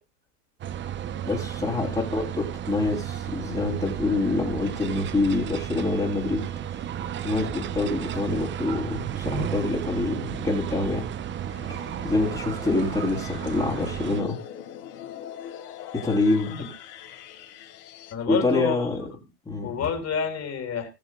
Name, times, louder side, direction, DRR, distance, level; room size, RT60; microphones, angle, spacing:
sound 1, 0.6-14.2, right 10 dB, 25° right, 0.9 m, -33 dB
voice 1, 1.2-6.5 7.2-11.0 11.7-11.8 12.0-14.4 15.9-16.7 18.3-19.0 19.5-19.8, left 2 dB, 10° left, -4 dB, 3.6 m, -26 dB
sound 2, 11.5-18.1, left 10 dB, 65° left, 4.3 m, -42 dB
voice 2, 18.1-19.0 19.6-20.9, left 7 dB, 30° left, 4 dB, 4.2 m, -29 dB
20.5 x 7.0 x 2.4 m, 0.25 s
hypercardioid pair, 120°, 49 cm